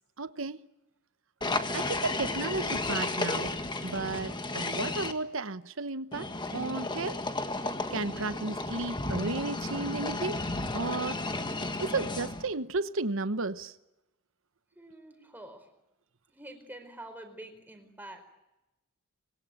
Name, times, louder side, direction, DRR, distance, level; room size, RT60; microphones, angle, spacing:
voice 1, 0.2-0.6 1.7-3.6 3.8-7.2 7.9-10.4 10.7-11.2 11.8-13.8, right 3 dB, 65° right, 1.1 m, -33 dB
sound 1, 1.4-5.1 6.1-12.5, left 2 dB, 20° left, 1.7 m, -33 dB
voice 2, 14.7-15.7 16.3-18.2, right 1 dB, 10° right, 4.7 m, -47 dB
25.5 x 22.0 x 9.2 m
head